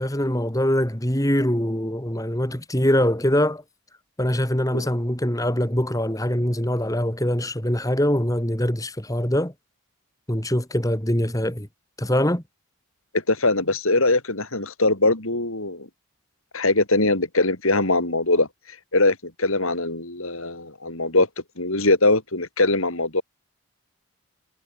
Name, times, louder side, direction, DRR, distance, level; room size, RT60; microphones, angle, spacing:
voice 1, 0.0-3.6 4.2-9.5 10.3-11.7 12.0-12.4, equal, 15° left, 2.7 m, -23 dB
voice 2, 13.1-15.9 16.5-18.5 18.9-21.3 21.6-23.2, left 2 dB, 70° left, 5.6 m, -21 dB
head